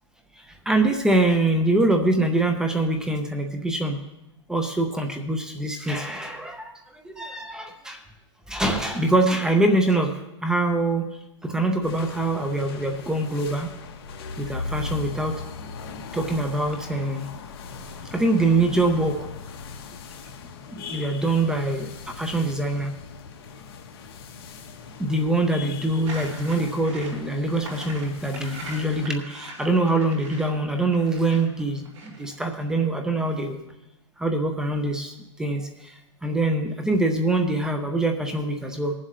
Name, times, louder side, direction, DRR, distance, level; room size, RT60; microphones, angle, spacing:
voice 1, 0.4-4.0 4.5-8.0 8.5-10.1 10.4-11.1 11.4-13.7 14.4-15.4 16.1-17.3 18.1-19.2 20.7-22.9 25.0-33.6 34.2-38.9, right 2 dB, 5° right, 5 dB, 0.5 m, -24 dB
sound 1, 11.8-29.1, left 4 dB, 50° left, 1.2 m, -39 dB
sound 2, 26.0-32.7, right 2 dB, 75° right, 3.7 m, -42 dB
21.0 x 7.5 x 3.2 m, 0.92 s
hypercardioid pair, 155°, 16 cm